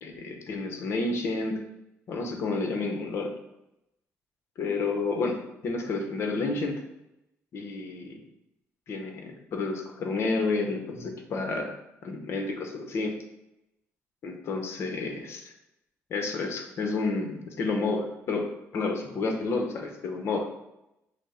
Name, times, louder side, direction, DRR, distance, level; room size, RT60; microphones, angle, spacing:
voice 1, 0.0-1.6 2.1-3.3 4.6-6.8 7.5-8.2 8.9-11.7 12.0-13.1 14.2-15.5 16.1-18.5 18.7-20.5, left 3 dB, 55° left, 3 dB, 0.8 m, -30 dB
5.9 x 2.0 x 4.2 m, 0.88 s
cardioid pair, 140°, 5 cm